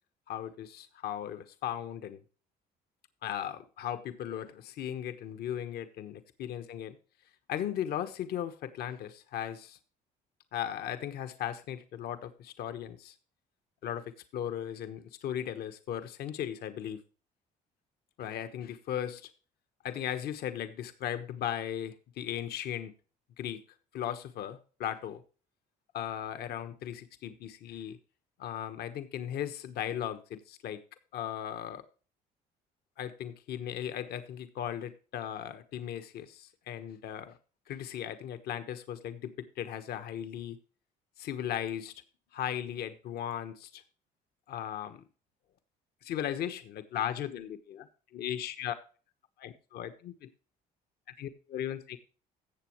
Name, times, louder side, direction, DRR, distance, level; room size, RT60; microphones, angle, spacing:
voice 1, 0.3-2.2 3.2-6.9 7.5-9.8 10.5-13.1 13.8-17.0 18.2-19.3 19.8-22.9 23.4-23.6 23.9-25.2 25.9-28.0 28.4-30.8 31.1-31.8 33.0-37.3 37.7-40.6 41.2-41.9 42.3-43.8 44.5-45.0 46.0-48.7 49.4-50.3 51.2-52.0, left 10 dB, 70° left, 1.1 m, -37 dB
16.0 x 7.1 x 3.1 m
cardioid pair, 110°, 17 cm